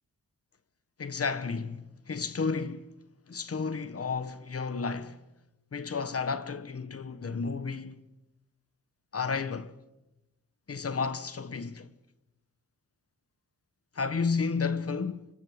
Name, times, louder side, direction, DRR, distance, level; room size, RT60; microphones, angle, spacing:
voice 1, 1.0-2.9 3.3-5.2 5.7-8.0 9.1-9.7 10.7-11.9 13.9-15.3, left 5 dB, 40° left, 1.3 m, -32 dB
29.0 x 25.5 x 5.1 m
wide cardioid pair, 110°, 35 cm